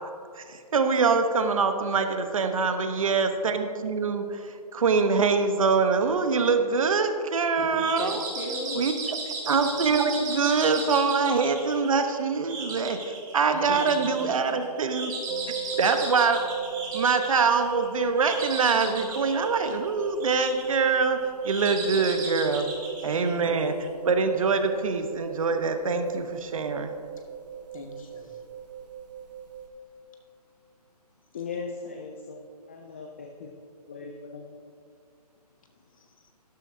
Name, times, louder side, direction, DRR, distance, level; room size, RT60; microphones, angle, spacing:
voice 1, 0.4-8.1 8.7-9.2 9.5-15.1 15.8-16.4 16.9-21.2 21.4-22.7 23.0-23.7 24.0-26.9, right 4 dB, 55° right, 7 dB, 1.0 m, -24 dB
voice 2, 7.6-8.8 13.5-14.4 15.6-15.8 23.1-23.8 27.1-27.2 27.7-28.4 36.0-36.1, left 2 dB, 55° left, 2 dB, 1.9 m, -39 dB
sound 1, 7.7-23.8, right 3 dB, 30° right, 2.6 m, -36 dB
sound 2, 15.3-29.6, right 8 dB, 80° right, 1.7 m, -37 dB
voice 3, 31.3-33.5 33.9-34.4, left 4 dB, 20° left, 2 dB, 0.4 m, -38 dB
12.5 x 12.5 x 2.7 m, 2.4 s
hypercardioid pair, 155°, 21 cm